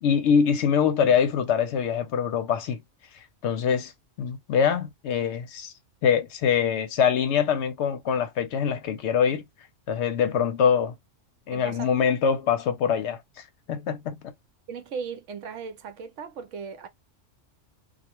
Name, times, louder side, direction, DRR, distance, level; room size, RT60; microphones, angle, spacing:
voice 1, 0.0-2.8 3.4-3.9 4.2-5.7 6.0-9.4 9.9-10.9 11.5-13.2 13.7-14.3, left 7 dB, 70° left, 0.8 m, -24 dB
voice 2, 11.5-11.9 14.7-16.9, right 6 dB, 80° right, 0.9 m, -37 dB
2.4 x 2.1 x 2.9 m
omnidirectional pair, 1.3 m